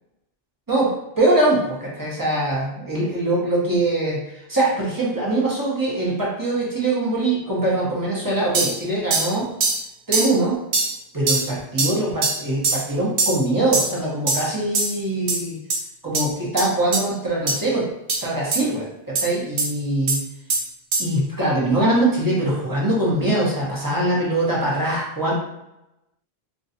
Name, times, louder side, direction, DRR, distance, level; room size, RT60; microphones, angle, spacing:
voice 1, 0.7-4.2 4.5-9.5 10.1-10.6 11.1-15.6 16.0-17.9 18.2-20.2 21.0-25.3, right 1 dB, 20° right, -6 dB, 0.8 m, -22 dB
sound 1, 8.5-8.7 9.1-9.3 9.6-9.8 10.1-10.3 10.7-10.9 11.3-11.5 11.8-11.9 12.2-12.4 12.6-12.8 13.2-13.4 13.7-13.9 14.3-14.5 14.7-14.9 15.3-15.4 15.7-15.8 16.1-16.2 16.6-16.7 16.9-17.0 17.5-17.6 18.1-18.2 18.5-18.6 19.2-19.3 19.6-19.7 20.1-20.2 20.5-20.6 20.9-21.0, right 3 dB, 65° right, 0.8 m, -21 dB
3.0 x 2.5 x 2.7 m, 0.90 s
omnidirectional pair, 1.1 m